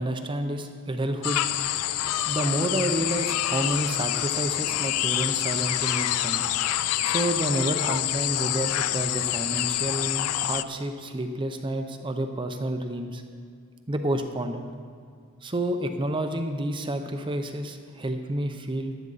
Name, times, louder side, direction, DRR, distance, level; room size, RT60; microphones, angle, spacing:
voice 1, 0.0-1.4 2.2-6.4 7.0-13.2 13.9-14.6 15.4-19.0, right 1 dB, 20° right, 6 dB, 0.6 m, -29 dB
sound 1, 1.2-10.6, left 13 dB, 80° left, 0.4 m, -27 dB
15.0 x 11.0 x 4.0 m, 2.1 s
head